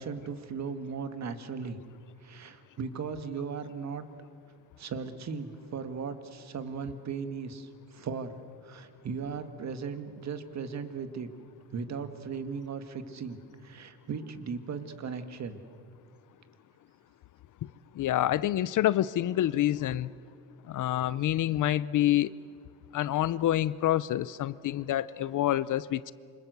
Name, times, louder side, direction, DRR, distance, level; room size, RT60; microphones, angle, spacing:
voice 1, 0.0-1.8 2.2-4.1 4.8-8.3 8.6-11.3 11.7-15.6, right 5 dB, 45° right, 9 dB, 1.9 m, -37 dB
voice 2, 18.0-20.1 20.7-22.3 22.9-26.1, left 13 dB, 55° left, 18 dB, 0.6 m, -27 dB
28.0 x 25.5 x 8.1 m, 2.2 s
cardioid pair, 145°, 38 cm